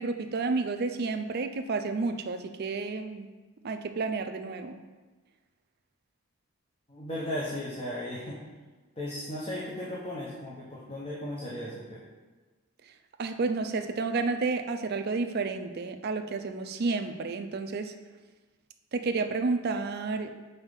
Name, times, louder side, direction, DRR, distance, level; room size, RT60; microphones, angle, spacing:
voice 1, 0.0-3.3 3.6-4.8 13.2-17.9 18.9-20.3, right 3 dB, 45° right, 7 dB, 0.4 m, -31 dB
voice 2, 6.9-8.4 9.0-12.0, left 1 dB, 25° left, -6 dB, 0.9 m, -36 dB
5.5 x 4.0 x 5.3 m, 1.3 s
head